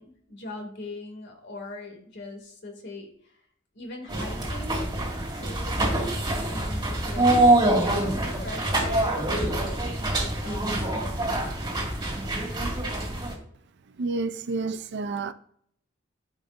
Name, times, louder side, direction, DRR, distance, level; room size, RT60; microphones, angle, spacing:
voice 1, 0.0-3.1 3.7-4.9 5.3-9.7 10.2-11.7, left 2 dB, 60° left, 2.3 m, -41 dB
sound 1, 4.1-13.3, right 1 dB, 25° right, 2.1 m, -25 dB
voice 2, 14.0-15.3, right 3 dB, 60° right, 0.5 m, -29 dB
14.0 x 5.2 x 2.6 m
head